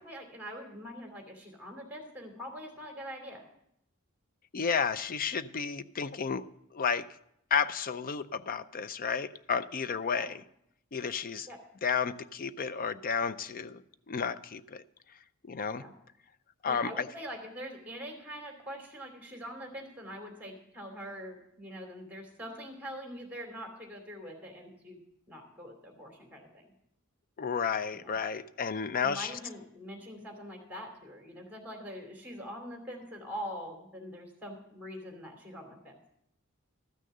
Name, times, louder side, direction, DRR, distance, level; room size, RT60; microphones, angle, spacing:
voice 1, 0.0-3.4 10.1-10.3 11.5-11.6 15.7-15.9 16.7-25.0 25.3-26.6 27.9-28.1 29.0-36.0, equal, 10° right, 1 dB, 2.8 m, -43 dB
voice 2, 4.5-6.4 6.7-7.1 7.5-10.4 10.9-11.5 11.8-13.8 14.1-14.8 15.4-15.8 16.6-17.1 27.4-29.4, left 6 dB, 40° left, 14 dB, 0.5 m, -32 dB
13.5 x 6.4 x 6.6 m, 0.75 s
head